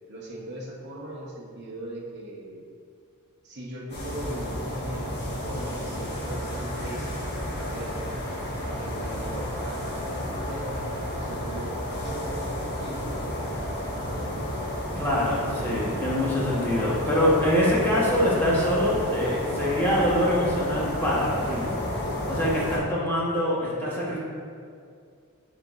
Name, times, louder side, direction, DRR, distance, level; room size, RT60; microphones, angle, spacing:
voice 1, 0.1-2.6 3.4-7.2 7.5-8.2 8.8-14.4, right 1 dB, 50° right, -3 dB, 0.9 m, -39 dB
sound 1, 3.9-22.8, left 1 dB, 45° left, 1.3 m, -31 dB
voice 2, 15.0-21.7 22.3-24.2, equal, 10° left, -8 dB, 1.1 m, -24 dB
9.7 x 3.9 x 2.5 m, 2.3 s
head